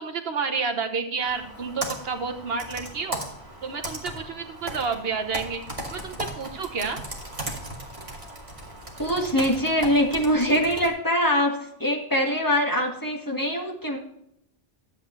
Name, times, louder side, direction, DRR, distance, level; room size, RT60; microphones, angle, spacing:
voice 1, 0.0-3.2 3.6-5.6 5.9-7.0, right 5 dB, 65° right, 5 dB, 1.2 m, -30 dB
Computer keyboard, 1.2-10.9, right 1 dB, 30° right, 2.1 m, -37 dB
voice 2, 9.0-14.0, equal, 20° left, 0 dB, 1.7 m, -23 dB
12.0 x 8.2 x 3.1 m, 0.75 s
omnidirectional pair, 1.1 m